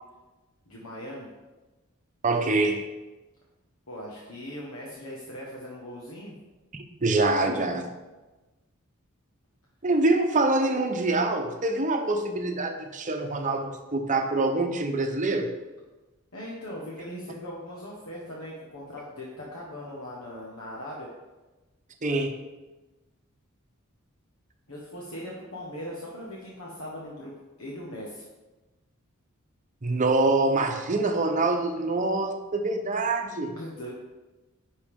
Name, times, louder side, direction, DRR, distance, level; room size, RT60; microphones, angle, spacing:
voice 1, 0.7-1.3 3.9-6.3 16.3-21.1 24.7-28.2 33.5-33.9, equal, 80° left, -4 dB, 1.4 m, -39 dB
voice 2, 2.2-2.8 6.7-7.9 9.8-15.5 22.0-22.3 29.8-33.5, right 2 dB, 35° right, 5 dB, 0.8 m, -25 dB
10.0 x 5.3 x 3.7 m, 1.1 s
head